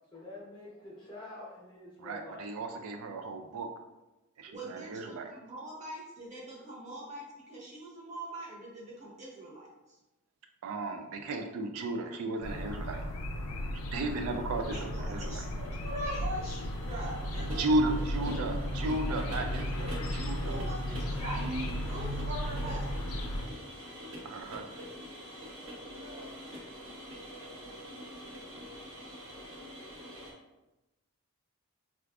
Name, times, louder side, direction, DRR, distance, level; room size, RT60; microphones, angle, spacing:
voice 1, 0.1-2.5, left 2 dB, 20° left, -5 dB, 0.8 m, -47 dB
voice 2, 2.0-3.7 4.4-5.3 10.6-13.0 13.7-15.4 17.5-20.6 21.4-21.7 24.2-24.8, right 2 dB, 75° right, 5 dB, 0.3 m, -34 dB
voice 3, 4.5-10.0 14.7-18.0 18.3-18.5 20.4-21.5 21.8-23.2 25.1-26.4, right 1 dB, 30° right, -5 dB, 1.0 m, -43 dB
sound 1, 12.4-23.5, equal, 80° left, 0.4 m, -35 dB
sound 2, 15.1-30.3, equal, 60° right, 0.9 m, -45 dB
4.5 x 2.4 x 2.3 m, 1.0 s
head